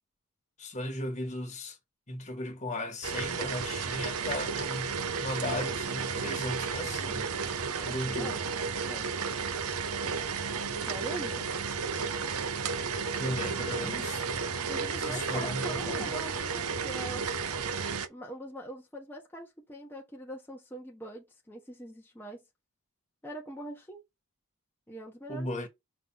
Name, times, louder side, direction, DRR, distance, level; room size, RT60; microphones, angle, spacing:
voice 1, 0.6-1.8 2.1-7.4 7.8-8.4 13.1-14.4 15.0-16.1 25.3-25.7, left 1 dB, 30° left, 1.6 m, -36 dB
sound 1, 3.0-18.1, right 5 dB, 75° right, 0.9 m, -33 dB
voice 2, 7.7-8.4 8.8-9.1 10.7-11.5 14.7-17.2 18.1-22.4 23.2-24.0 24.9-25.7, right 1 dB, 10° left, 1.2 m, -43 dB
5.9 x 3.3 x 5.7 m
head